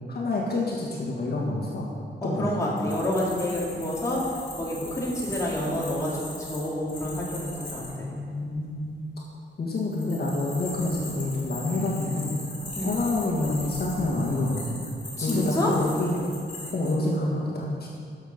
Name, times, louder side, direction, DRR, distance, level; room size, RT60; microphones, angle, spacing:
voice 1, 0.1-1.9 2.2-2.7 7.7-9.0 9.6-12.3 12.8-14.8 15.2-16.3 16.7-17.9, left 2 dB, 55° left, -4 dB, 1.7 m, -28 dB
voice 2, 2.2-4.2 4.6-8.1 12.8-13.0 15.2-15.7, left 1 dB, 15° left, -6 dB, 2.2 m, -28 dB
sound 1, 2.6-7.9 9.8-16.9, left 2 dB, 40° left, 2.8 m, -40 dB
13.0 x 6.6 x 5.3 m, 2.5 s
wide cardioid pair, 180°, 19 cm